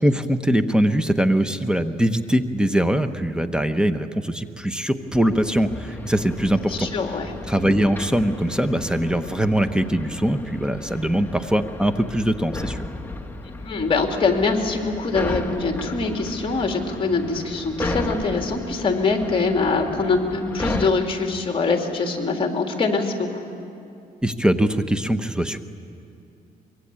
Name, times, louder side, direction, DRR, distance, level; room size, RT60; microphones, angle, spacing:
voice 1, 0.0-7.2 7.5-12.9 24.2-25.6, right 1 dB, 5° right, 9 dB, 1.1 m, -22 dB
sound 1, 5.1-20.9, left 2 dB, 10° left, 1.7 m, -34 dB
voice 2, 6.8-7.3 13.6-23.3, left 4 dB, 35° left, 3 dB, 3.3 m, -23 dB
24.5 x 23.0 x 8.8 m, 2.6 s
cardioid pair, 105°, 16 cm